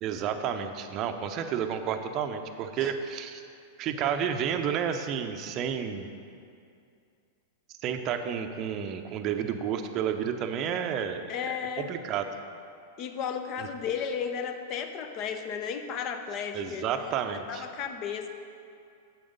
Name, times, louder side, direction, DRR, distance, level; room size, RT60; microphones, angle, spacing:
voice 1, 0.0-3.4 3.8-6.1 7.8-12.2 13.6-13.7 16.5-17.6, right 8 dB, 35° right, 7 dB, 0.7 m, -31 dB
voice 2, 11.3-11.9 13.0-17.1 17.5-18.3, left 7 dB, 40° left, 7 dB, 0.7 m, -34 dB
8.5 x 7.8 x 5.3 m, 2.4 s
figure-of-eight pair, 95°, 0 cm